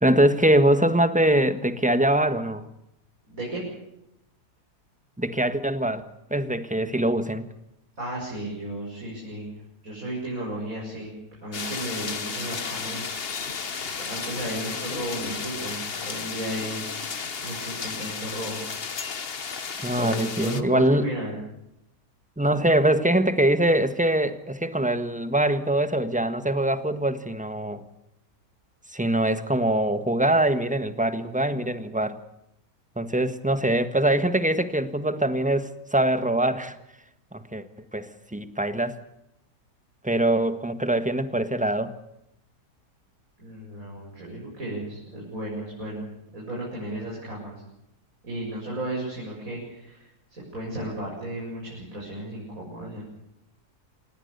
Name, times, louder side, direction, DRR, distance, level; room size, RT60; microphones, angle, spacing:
voice 1, 0.0-2.6 5.2-6.0 6.3-7.5 19.8-21.0 22.4-27.8 28.9-32.2 33.0-36.7 37.3-37.6 37.9-39.0 40.0-41.9, right 1 dB, 5° right, 10 dB, 1.3 m, -23 dB
voice 2, 3.3-3.6 8.0-9.5 9.8-11.1 11.4-13.1 14.0-16.8 17.4-18.6 19.9-21.4 43.4-47.5 48.2-53.0, right 1 dB, 55° right, -4 dB, 8.1 m, -34 dB
sound 1, 11.5-20.6, left 5 dB, 40° left, 1.3 m, -33 dB
28.0 x 18.5 x 6.9 m, 0.84 s
omnidirectional pair, 1.7 m